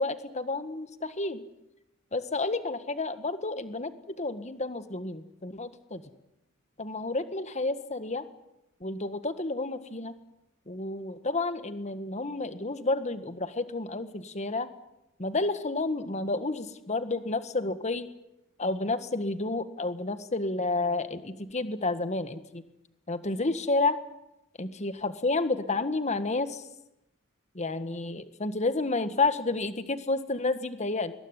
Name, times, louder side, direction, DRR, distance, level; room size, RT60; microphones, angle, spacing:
voice 1, 0.0-1.4 2.1-6.0 6.8-8.2 8.8-10.1 10.7-14.7 15.2-18.1 18.6-22.6 23.1-24.0 24.6-26.6 27.6-31.1, left 3 dB, 35° left, 11 dB, 1.6 m, -30 dB
22.0 x 21.0 x 9.9 m, 0.87 s
head